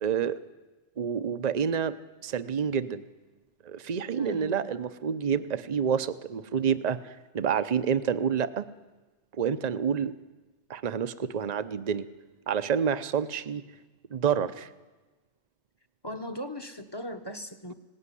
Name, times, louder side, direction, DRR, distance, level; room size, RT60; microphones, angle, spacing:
voice 1, 0.0-0.4 1.0-2.0 2.2-3.0 3.6-7.0 7.3-8.7 9.4-10.1 10.7-12.1 12.5-13.6 14.1-14.7, right 7 dB, 40° right, 12 dB, 0.8 m, -28 dB
voice 2, 4.2-4.8 16.0-17.7, left 1 dB, 20° left, 7 dB, 1.2 m, -38 dB
20.0 x 17.5 x 9.9 m, 1.2 s
omnidirectional pair, 1.2 m